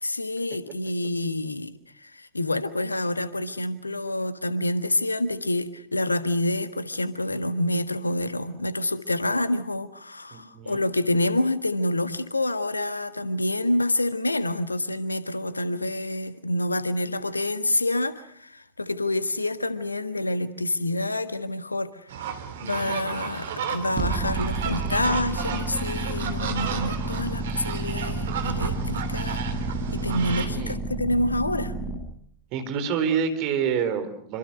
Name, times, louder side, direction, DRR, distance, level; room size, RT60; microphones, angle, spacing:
voice 1, 0.0-1.7 2.0-22.1 22.6-29.4 29.9-31.7, left 1 dB, 80° left, 13 dB, 1.5 m, -27 dB
voice 2, 10.3-10.8 22.6-23.2 30.3-30.8 32.5-34.4, right 7 dB, 40° right, 8 dB, 4.2 m, -28 dB
sound 1, 22.1-30.5, right 7 dB, 60° right, 3.4 m, -33 dB
sound 2, 24.0-32.0, right 2 dB, 25° right, 6.4 m, -30 dB
27.0 x 25.5 x 6.4 m, 0.64 s
figure-of-eight pair, 90°, 0 cm